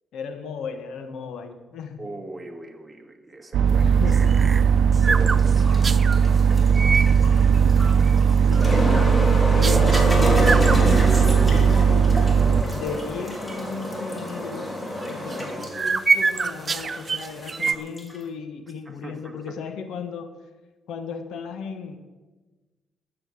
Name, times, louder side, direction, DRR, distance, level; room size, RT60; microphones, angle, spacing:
voice 1, 0.1-2.1 3.8-4.5 8.5-9.1 9.5-12.2 12.7-14.8 15.1-20.3 20.9-22.0, left 6 dB, 75° left, 8 dB, 1.5 m, -35 dB
voice 2, 2.0-4.0 5.0-5.9 6.4-7.0 8.3-8.6 19.0-19.4, right 2 dB, 15° right, 3 dB, 2.2 m, -40 dB
sound 1, 3.5-12.6, right 6 dB, 75° right, 0.7 m, -18 dB
sound 2, 3.8-6.2 6.7-7.1 7.6-8.2 8.5-9.2 9.6-10.1 10.4-11.9 12.2-12.3 12.7-13.0 13.5-13.6 15.0-17.7, right 4 dB, 35° right, 0.6 m, -27 dB
sound 3, 5.1-18.2, equal, 15° left, 3.2 m, -28 dB
13.0 x 7.7 x 7.7 m, 1.2 s
cardioid pair, 90°, 0 cm